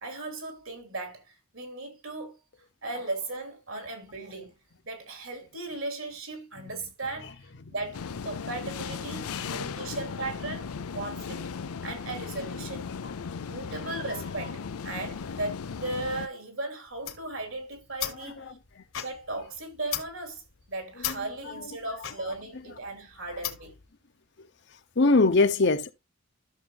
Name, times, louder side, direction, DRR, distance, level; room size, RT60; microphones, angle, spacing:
voice 1, 0.0-2.4 2.8-4.5 4.8-11.5 11.8-12.9 13.5-18.4 19.0-20.4 20.7-23.8, right 2 dB, 65° right, 3.2 m, -37 dB
sound 1, 7.9-16.3, left 6 dB, 90° left, 0.5 m, -37 dB
voice 2, 9.3-10.0 18.4-18.8 21.1-21.2 25.0-25.9, left 3 dB, 50° left, 0.8 m, -24 dB
sound 2, 16.9-23.9, left 11 dB, 70° left, 1.5 m, -38 dB
13.0 x 6.8 x 2.3 m
head